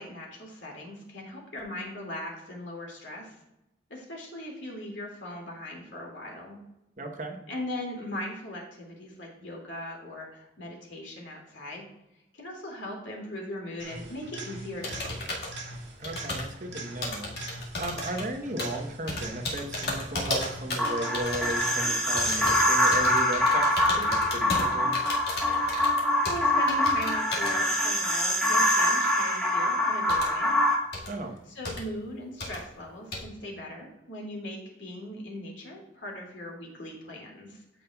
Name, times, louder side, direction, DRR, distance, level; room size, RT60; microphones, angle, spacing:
voice 1, 0.0-3.4 3.9-6.6 7.5-11.8 12.3-15.6 25.6-25.8 26.2-30.6 31.6-37.6, left 1 dB, 90° left, 0 dB, 2.3 m, -39 dB
voice 2, 7.0-7.4 16.0-17.3 17.8-25.0 31.1-31.3, right 1 dB, 45° right, 3 dB, 1.0 m, -35 dB
sound 1, 13.8-23.4 31.4-31.5, right 1 dB, 85° right, 1.7 m, -41 dB
sound 2, 14.8-15.6 16.0-16.6 17.0-18.2 18.6-18.8 19.1-21.7 22.0-22.6 22.9-26.4 26.7-27.5 30.1-30.3 30.9-31.1 31.6-31.8 32.4-32.6 33.1-33.2, left 2 dB, 60° left, 1.9 m, -34 dB
sound 3, 20.8-30.8, left 1 dB, 5° left, 1.3 m, -24 dB
13.5 x 5.2 x 2.3 m, 0.87 s
head